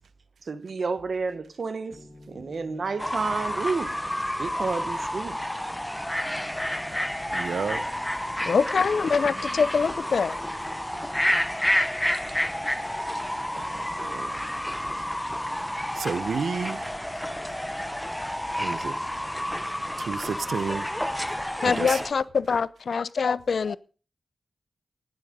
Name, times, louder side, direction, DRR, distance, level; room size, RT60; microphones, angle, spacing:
voice 1, 0.4-4.0 4.4-5.4, right 4 dB, 60° right, 1.2 m, -30 dB
sound 1, 1.9-21.5, left 1 dB, 25° left, 3.9 m, -52 dB
Fowl / Bird, 3.0-22.1, equal, 5° left, 0.8 m, -30 dB
voice 2, 7.3-7.9 13.6-14.4 15.9-16.9 18.6-19.0 20.0-20.9 21.6-22.0, right 5 dB, 90° right, 0.8 m, -31 dB
voice 3, 8.5-10.4 21.6-23.8, left 5 dB, 70° left, 0.6 m, -24 dB
18.5 x 7.7 x 5.2 m
wide cardioid pair, 135°, 0 cm